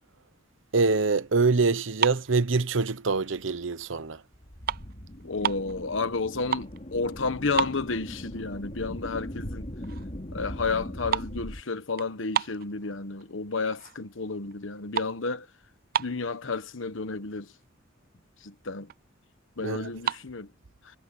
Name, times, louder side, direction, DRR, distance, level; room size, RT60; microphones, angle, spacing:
voice 1, 0.7-4.2 19.6-19.9, right 4 dB, 70° right, 1.0 m, -25 dB
sound 1, 1.9-3.3 3.7-4.0 4.3-5.7 6.2-6.8 7.1-7.2 7.5-8.4 8.8-8.9 9.5-9.6 9.8-10.2 10.4-13.3 13.7-14.2 14.4-16.4 17.1-17.2 17.4-17.7 18.1-18.2 18.4-19.1 19.8-20.2, right 9 dB, 50° right, 0.4 m, -32 dB
sound 2, 4.3-11.6, equal, 35° left, 3.3 m, -39 dB
voice 2, 5.2-9.7 10.3-15.5 16.0-17.5 18.4-18.9 19.6-20.5, left 4 dB, 70° left, 1.2 m, -31 dB
head